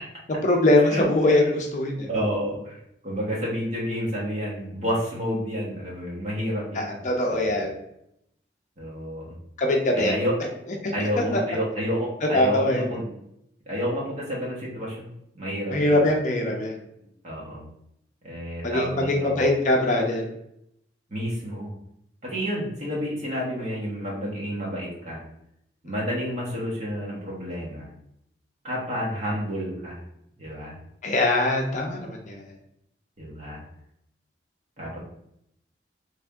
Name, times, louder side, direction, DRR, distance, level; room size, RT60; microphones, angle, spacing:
voice 1, 0.4-2.1 6.7-7.7 9.6-10.1 10.8-10.9 11.3-11.4 12.3-12.9 15.7-16.8 18.6-20.3 31.0-32.4, left 1 dB, 40° left, 1 dB, 0.6 m, -22 dB
voice 2, 2.1-7.0 7.3-7.5 8.8-9.4 9.9-10.3 10.9-13.1 13.6-15.1 15.3-16.0 17.2-17.6 18.2-19.4 21.1-21.7 22.2-25.2 25.8-27.9 28.6-30.0 30.4-30.7 33.2-33.6 34.8-35.0, equal, 40° right, -5 dB, 1.2 m, -30 dB
3.3 x 2.7 x 3.4 m, 0.77 s
head